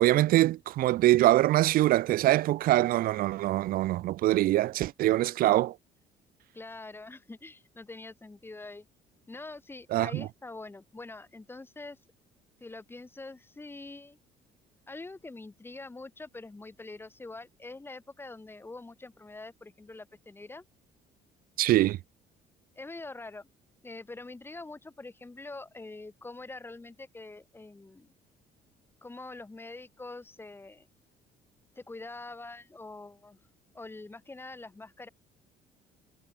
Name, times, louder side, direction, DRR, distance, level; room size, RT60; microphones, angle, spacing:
voice 1, 0.0-5.7 9.9-10.3 21.6-22.0, right 15 dB, 60° right, 0.4 m, -24 dB
voice 2, 6.5-8.9 9.3-12.0 12.6-14.2 14.9-20.6 22.8-23.5 23.8-28.1 29.0-30.9 31.7-33.4 33.7-35.1, left 2 dB, 15° left, 1.1 m, -44 dB
cardioid pair, 110°, 17 cm